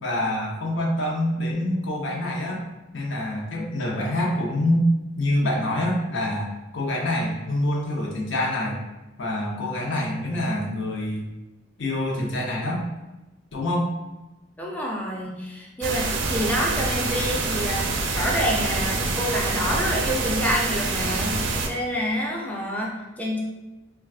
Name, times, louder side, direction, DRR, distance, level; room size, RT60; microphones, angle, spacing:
voice 1, 0.0-2.6 2.9-4.9 5.2-6.5 6.7-8.8 9.2-11.2 11.8-12.8 13.5-13.9, left 1 dB, 80° left, -2 dB, 0.8 m, -26 dB
voice 2, 14.6-17.9 18.2-23.4, equal, 10° left, -3 dB, 0.6 m, -27 dB
sound 1, 15.8-21.7, right 3 dB, 75° right, 0.5 m, -26 dB
4.5 x 2.3 x 2.4 m, 1.0 s
head